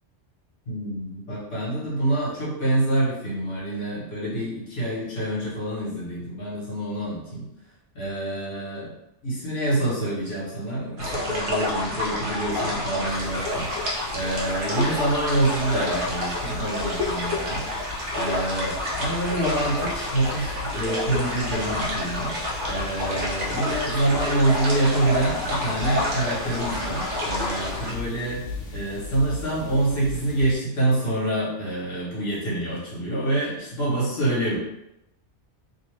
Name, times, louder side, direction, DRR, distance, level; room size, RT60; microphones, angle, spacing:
voice 1, 0.7-7.5 7.9-8.9 9.2-17.6 18.1-22.3 22.7-28.4 28.7-34.6, right 1 dB, 55° left, -6 dB, 1.4 m, -26 dB
sound 1, 11.0-27.9, left 1 dB, 50° right, 0.9 m, -29 dB
sound 2, 13.0-30.5, left 4 dB, 85° left, 1.0 m, -38 dB
2.8 x 2.5 x 3.2 m, 0.85 s
omnidirectional pair, 1.2 m